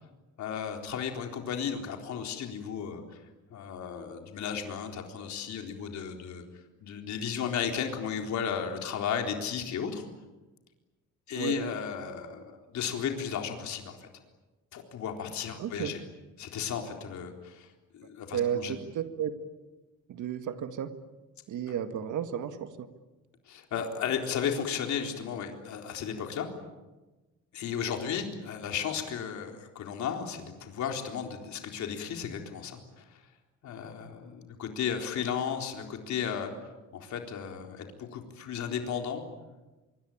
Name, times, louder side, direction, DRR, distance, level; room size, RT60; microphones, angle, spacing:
voice 1, 0.4-3.0 3.5-6.4 6.8-10.1 11.3-14.1 14.7-16.0 16.4-17.7 17.9-18.8 23.5-26.5 27.5-33.2 33.6-36.5 36.9-39.2, left 7 dB, 60° left, 3 dB, 4.1 m, -34 dB
voice 2, 15.6-15.9 18.3-19.5 20.1-20.9 21.5-22.9, right 9 dB, 65° right, 8 dB, 1.9 m, -33 dB
26.0 x 23.0 x 8.8 m, 1.1 s
cardioid pair, 170°, 33 cm